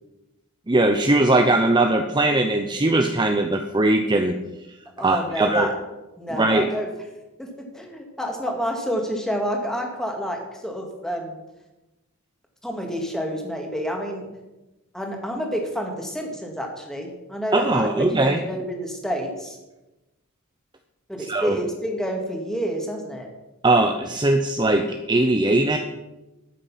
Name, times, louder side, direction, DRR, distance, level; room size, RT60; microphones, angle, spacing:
voice 1, 0.7-4.4 5.0-5.7 6.3-6.7 17.5-18.4 21.3-21.6 23.6-25.8, right 2 dB, 20° right, 5 dB, 0.7 m, -20 dB
voice 2, 5.0-5.9 6.2-6.9 7.4-7.5 7.7-11.4 12.6-14.3 14.9-19.6 21.1-23.3, equal, ahead, 1 dB, 2.2 m, -29 dB
13.0 x 8.6 x 5.8 m, 1.0 s
head